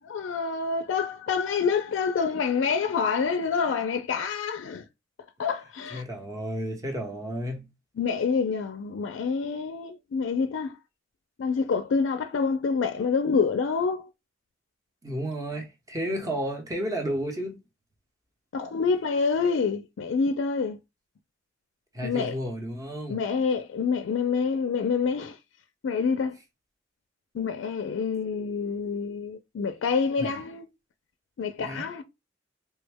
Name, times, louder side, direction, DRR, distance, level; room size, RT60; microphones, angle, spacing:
voice 1, 0.1-4.8 5.4-6.0 8.0-10.8 11.4-14.1 18.5-20.8 22.0-22.4 23.1-25.4 25.8-26.3 27.3-30.7 31.4-32.0, left 5 dB, 75° left, 0.4 m, -27 dB
voice 2, 5.9-7.6 15.0-17.6 21.9-23.2 30.2-30.4 31.6-31.9, equal, 20° right, 0.8 m, -32 dB
3.3 x 2.1 x 3.4 m
head